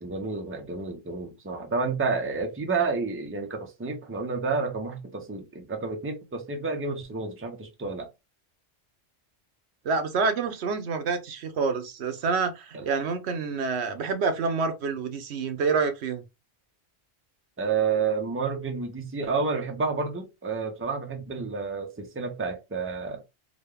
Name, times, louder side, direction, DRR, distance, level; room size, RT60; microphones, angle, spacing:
voice 1, 0.0-8.1 12.7-12.9 17.6-23.2, right 4 dB, 15° right, 0.6 m, -30 dB
voice 2, 9.8-16.2, right 4 dB, 75° right, 1.0 m, -27 dB
3.8 x 2.3 x 3.3 m
omnidirectional pair, 1.1 m